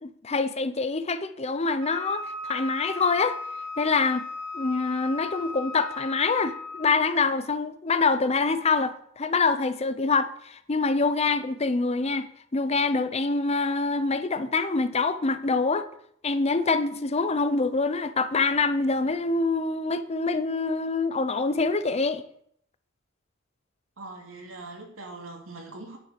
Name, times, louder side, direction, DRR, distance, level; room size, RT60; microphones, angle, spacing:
voice 1, 0.0-3.4 3.8-4.3 4.5-12.3 12.5-15.9 16.2-22.2, left 4 dB, 30° left, 0.6 m, -25 dB
Wind instrument woodwind instrument, 1.8-7.0, left 3 dB, 60° right, 4.3 m, -37 dB
voice 2, 24.0-26.0, right 2 dB, 80° right, 2.6 m, -41 dB
9.7 x 7.7 x 5.9 m
head